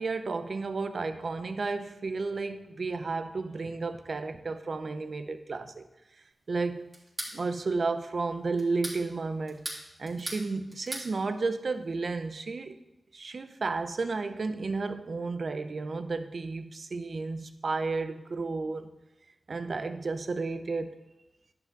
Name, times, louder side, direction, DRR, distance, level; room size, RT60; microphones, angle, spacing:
voice 1, 0.0-5.9 6.5-6.9 7.3-9.7 10.0-12.8 13.1-18.9 19.5-21.0, right 3 dB, 65° right, 9 dB, 0.7 m, -32 dB
sound 1, 6.9-7.4 8.6-9.0 9.5-10.4 10.7-11.1, right 1 dB, 40° right, 3.3 m, -37 dB
10.5 x 7.6 x 4.0 m, 0.93 s
cardioid pair, 50°, 0 cm